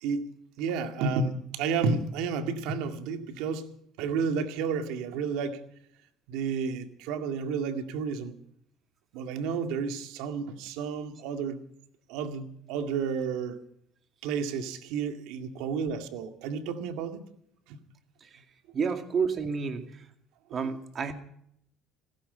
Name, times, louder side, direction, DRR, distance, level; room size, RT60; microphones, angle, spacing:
voice 1, 0.6-3.7 4.0-5.6 6.3-8.3 9.1-11.6 12.1-13.6 14.2-17.2 17.7-17.8, right 5 dB, 80° right, 2.1 m, -31 dB
voice 2, 18.7-20.0 20.5-21.1, right 5 dB, 35° right, 2.3 m, -30 dB
16.0 x 15.0 x 5.5 m
cardioid pair, 120°, 0 cm